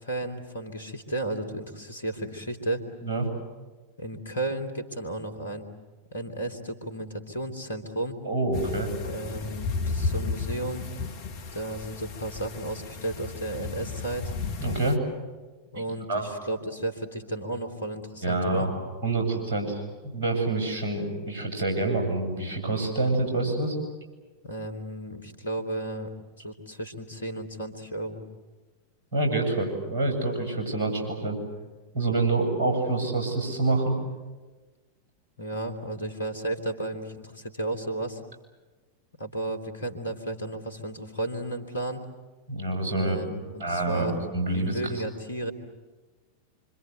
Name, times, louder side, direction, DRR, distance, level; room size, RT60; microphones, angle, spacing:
voice 1, 0.0-2.8 4.0-5.7 6.1-8.2 9.1-10.9 11.5-14.3 15.7-18.7 24.4-26.1 26.4-28.2 35.4-38.2 39.2-42.0 42.9-44.2 44.5-45.5, right 1 dB, 75° left, 7 dB, 3.0 m, -33 dB
voice 2, 8.2-8.9 14.6-15.0 15.8-15.9 16.1-16.3 18.2-19.8 20.1-23.8 29.1-31.4 31.9-33.9 42.5-43.2 43.6-44.8, right 2 dB, 55° right, 3 dB, 8.0 m, -27 dB
sound 1, 8.5-15.0, left 4 dB, 50° left, 1.5 m, -33 dB
26.5 x 25.5 x 8.2 m, 1.3 s
figure-of-eight pair, 90°, 0 cm